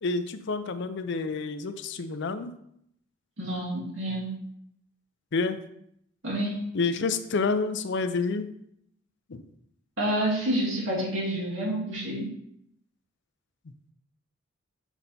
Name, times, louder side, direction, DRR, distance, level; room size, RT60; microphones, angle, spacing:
voice 1, 0.0-2.5 5.3-5.6 6.7-8.5 9.3-9.4, left 4 dB, 60° left, 10 dB, 0.5 m, -28 dB
voice 2, 3.4-4.3 6.2-6.6 10.0-12.3, right 1 dB, 65° right, -5 dB, 2.6 m, -28 dB
7.2 x 4.0 x 4.2 m, 0.73 s
head